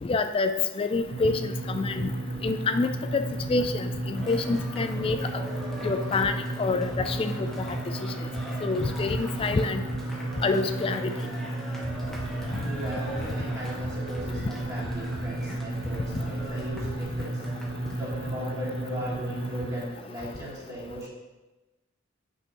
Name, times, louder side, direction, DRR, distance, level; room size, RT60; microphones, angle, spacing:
voice 1, 0.0-2.1 2.4-3.2 3.5-5.4 5.8-7.8 8.6-9.8 10.4-11.1, left 3 dB, 30° left, 9 dB, 0.3 m, -27 dB
sound 1, 1.1-19.8, right 2 dB, 90° right, 1.0 m, -33 dB
Cheering, 4.1-18.0, equal, ahead, 1.0 m, -43 dB
sound 2, 11.8-17.0, equal, 70° right, 1.3 m, -43 dB
voice 2, 12.6-17.4 18.0-21.1, equal, 20° right, -7 dB, 2.3 m, -38 dB
9.0 x 5.5 x 3.0 m, 1.1 s
head